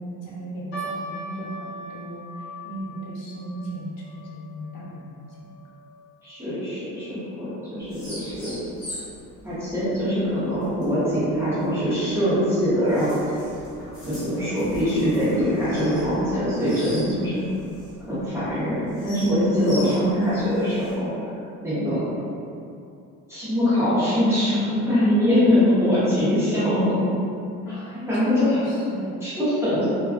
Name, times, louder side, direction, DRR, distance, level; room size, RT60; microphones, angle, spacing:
voice 1, 0.0-5.4 21.7-22.0 27.7-29.2, right 1 dB, 70° left, -6 dB, 0.7 m, -36 dB
sound 1, 0.7-7.2 7.5-7.6 8.3-8.6 9.2-9.3 9.7-9.8, right 1 dB, 35° left, 0.4 m, -40 dB
voice 2, 6.2-8.6 9.4-13.4 14.1-17.4 18.1-21.1 21.6-22.0 23.3-27.0 28.1-28.6 29.2-29.9, equal, 10° right, -14 dB, 0.7 m, -23 dB
sound 2, 7.8-20.9, equal, 50° left, 1.1 m, -41 dB
2.3 x 2.3 x 2.3 m, 2.6 s
cardioid pair, 170°, 33 cm